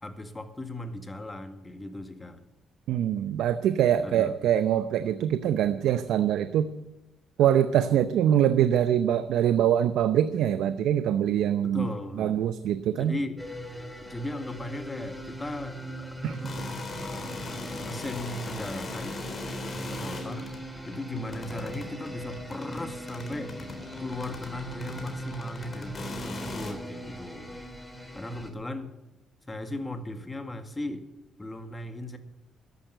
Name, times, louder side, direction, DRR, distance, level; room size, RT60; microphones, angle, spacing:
voice 1, 0.0-2.5 4.0-4.4 11.6-12.5 13.0-13.4 14.1-19.3 19.7-20.6 20.9-23.6 24.0-27.6 28.1-28.9 29.5-31.1 31.4-32.2, left 1 dB, 20° left, 7 dB, 2.0 m, -37 dB
voice 2, 2.9-6.7 7.4-11.9 12.2-13.1 16.2-16.4, right 10 dB, 85° right, 11 dB, 0.7 m, -24 dB
sound 1, 13.4-28.5, right 1 dB, ahead, 3.0 m, -40 dB
sound 2, 16.3-26.7, left 2 dB, 40° left, 3.8 m, -40 dB
13.5 x 11.0 x 8.1 m, 1.0 s
cardioid pair, 90°, 0 cm